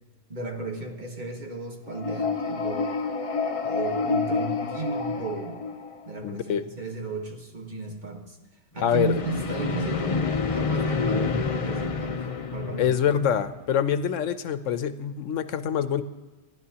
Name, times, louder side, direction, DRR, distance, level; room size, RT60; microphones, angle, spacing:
voice 1, 0.3-2.9 3.7-5.6 6.1-8.4 8.7-12.2 12.5-13.3, right 3 dB, 40° right, 1 dB, 1.6 m, -34 dB
sound 1, 1.9-6.2 8.8-13.8, left 4 dB, 35° left, 0.6 m, -28 dB
voice 2, 6.2-6.6 8.8-9.2 12.8-16.0, left 8 dB, 85° left, 11 dB, 1.1 m, -25 dB
28.5 x 10.5 x 2.9 m, 1.3 s
omnidirectional pair, 1.3 m